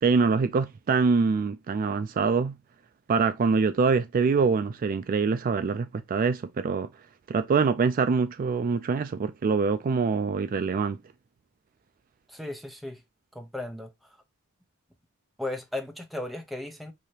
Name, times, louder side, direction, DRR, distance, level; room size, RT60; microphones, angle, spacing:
voice 1, 0.0-2.5 3.1-6.9 7.3-11.0, right 5 dB, 40° right, 0.3 m, -24 dB
voice 2, 12.3-13.0 13.3-13.9 15.4-16.9, left 2 dB, ahead, 0.7 m, -35 dB
4.8 x 2.8 x 2.7 m
head